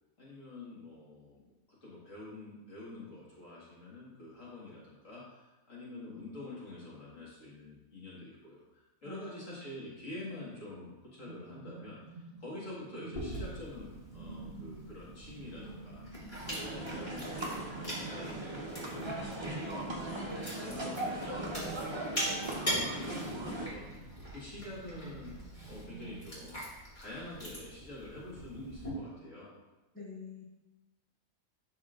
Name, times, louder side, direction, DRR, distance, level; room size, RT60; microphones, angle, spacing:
voice 1, 0.2-1.5 1.8-16.2 16.6-19.4 19.9-25.4 25.6-26.6 27.0-29.5, left 2 dB, 60° left, -7 dB, 2.0 m, -47 dB
voice 2, 9.0-9.7 29.9-30.4, left 5 dB, 10° left, -9 dB, 2.3 m, -47 dB
sound 1, 10.6-26.4, right 3 dB, 55° right, 1.5 m, -51 dB
Chewing mastication, 13.1-28.9, equal, 30° left, 2.2 m, -42 dB
sound 2, 16.4-23.7, right 1 dB, 25° right, 0.7 m, -39 dB
11.0 x 4.2 x 2.5 m, 1.1 s
omnidirectional pair, 1.5 m